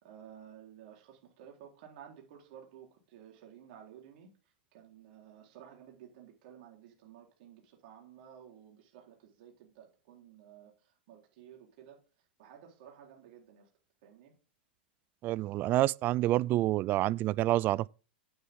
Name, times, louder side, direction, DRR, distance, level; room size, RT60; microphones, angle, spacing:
voice 1, 0.0-4.3 4.7-12.0 12.4-13.7 14.0-14.3, right 9 dB, 60° right, 4.0 m, -54 dB
voice 2, 15.2-17.9, right 15 dB, 35° right, 0.4 m, -28 dB
9.8 x 8.9 x 3.7 m
hypercardioid pair, 115°, 6 cm